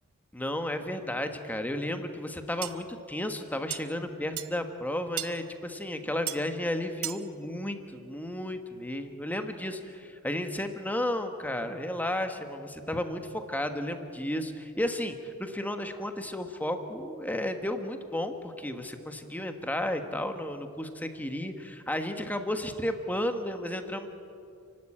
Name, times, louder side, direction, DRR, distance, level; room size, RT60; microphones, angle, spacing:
voice 1, 0.3-24.1, left 1 dB, 10° left, 7 dB, 1.3 m, -33 dB
sound 1, 2.6-2.7 3.7-3.8 4.4-4.5 5.2-5.3 6.3-6.4 7.0-7.2, right 14 dB, 85° right, 0.9 m, -33 dB
29.5 x 12.0 x 8.8 m, 2.5 s
head